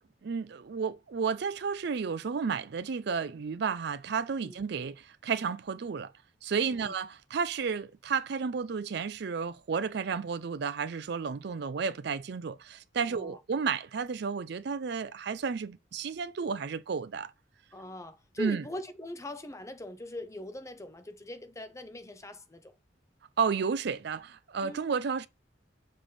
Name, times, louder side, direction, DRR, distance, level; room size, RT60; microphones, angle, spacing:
voice 1, 0.2-6.1 6.4-17.3 18.4-18.6 23.4-25.3, right 5 dB, 60° right, 0.4 m, -32 dB
voice 2, 6.6-6.9 13.1-13.4 17.7-22.7 24.6-24.9, left 1 dB, 15° left, 0.8 m, -41 dB
7.0 x 3.5 x 5.6 m
head